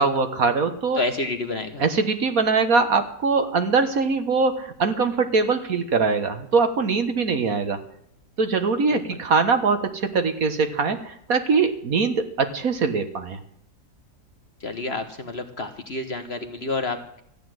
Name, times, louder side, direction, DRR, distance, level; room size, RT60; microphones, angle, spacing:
voice 1, 0.0-1.0 1.8-7.8 8.4-13.4, right 4 dB, 55° right, 8 dB, 1.7 m, -22 dB
voice 2, 0.9-1.8 8.9-9.2 14.6-17.2, left 2 dB, 40° left, 6 dB, 1.2 m, -29 dB
14.0 x 9.5 x 7.8 m, 0.71 s
omnidirectional pair, 1.8 m